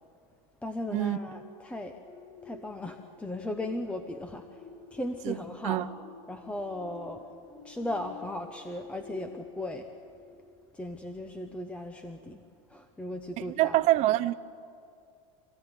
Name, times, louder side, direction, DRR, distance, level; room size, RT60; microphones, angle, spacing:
voice 1, 0.6-1.9 2.4-4.6 4.9-5.9 6.3-7.2 7.6-9.9 10.7-12.4 12.7-13.8, left 1 dB, 5° left, 0.9 m, -37 dB
sound 1, 0.9-10.8 11.3-11.5, left 4 dB, 35° left, 3.8 m, -51 dB
voice 2, 13.4-14.3, right 16 dB, 40° right, 0.8 m, -25 dB
26.5 x 15.5 x 9.9 m
supercardioid pair, 155°, 19 cm